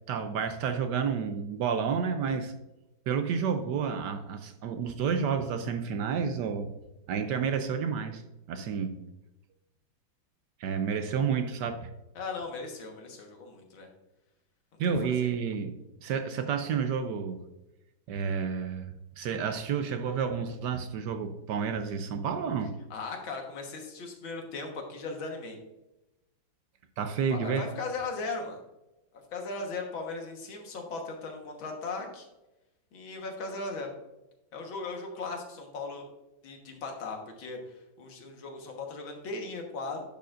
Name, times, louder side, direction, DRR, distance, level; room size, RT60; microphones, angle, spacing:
voice 1, 0.1-2.5 3.1-6.7 7.1-8.2 8.5-9.0 10.6-11.9 14.8-17.5 18.1-22.8 27.0-27.7, right 6 dB, 70° right, 8 dB, 1.1 m, -30 dB
voice 2, 12.2-13.9 15.0-15.3 22.9-25.6 27.3-28.6 29.3-32.3 32.9-33.9 34.5-36.1 36.4-40.0, left 3 dB, 80° left, 2 dB, 2.1 m, -38 dB
10.5 x 6.8 x 2.5 m, 0.95 s
omnidirectional pair, 2.1 m